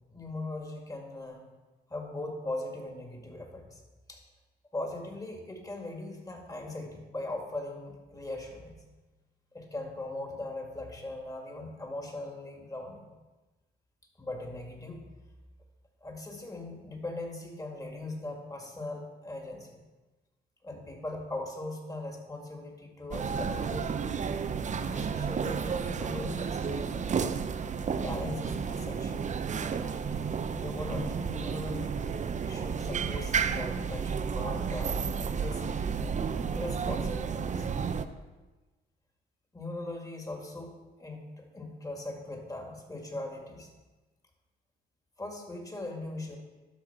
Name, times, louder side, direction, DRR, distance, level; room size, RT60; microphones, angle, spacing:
voice 1, 0.1-1.4 1.9-3.8 4.1-4.2 4.7-8.8 9.5-13.1 14.2-15.0 16.0-19.8 20.6-23.9 24.8-27.1 28.0-29.3 30.5-32.1 32.5-35.8 36.5-37.7 39.5-43.7 45.2-46.4, left 2 dB, 15° left, 1 dB, 2.1 m, -40 dB
sound 1, 23.1-38.1, right 6 dB, 40° right, 0.6 m, -32 dB
12.0 x 4.5 x 6.0 m, 1.2 s
cardioid pair, 90°, 20 cm